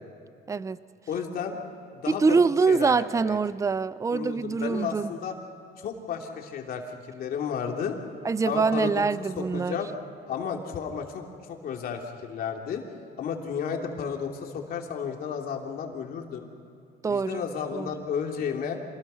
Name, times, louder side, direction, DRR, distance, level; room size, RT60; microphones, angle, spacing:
voice 1, 1.1-1.5 1.9-2.4 2.7-3.4 4.1-5.3 5.8-7.9 8.4-9.9 10.3-12.8 13.2-16.5 17.1-18.8, left 7 dB, 60° left, 2 dB, 2.9 m, -33 dB
voice 2, 2.1-5.1 8.2-9.8 17.0-17.5 17.7-17.9, right 4 dB, 20° right, 17 dB, 0.5 m, -24 dB
26.5 x 20.0 x 5.7 m, 2.6 s
cardioid pair, 110°, 17 cm